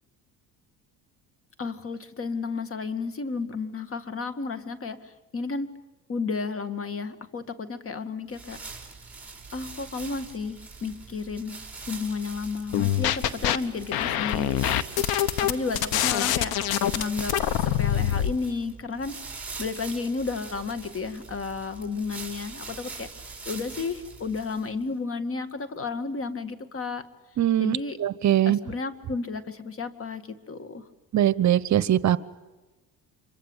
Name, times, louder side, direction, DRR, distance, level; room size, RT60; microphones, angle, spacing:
voice 1, 1.6-5.7 6.1-8.6 9.5-11.6 11.9-15.1 15.4-16.5 17.0-19.1 19.6-23.1 23.5-27.0 27.6-28.0 28.5-30.9, left 4 dB, 35° left, 11 dB, 2.1 m, -32 dB
sound 1, 8.3-24.8, right 4 dB, 5° right, 5.7 m, -42 dB
sound 2, 12.7-13.6 13.9-18.3, left 11 dB, 75° left, 1.3 m, -24 dB
voice 2, 27.4-28.6 31.1-32.2, right 11 dB, 50° right, 17 dB, 1.0 m, -22 dB
26.0 x 24.0 x 8.2 m, 1.1 s
cardioid pair, 100°, 37 cm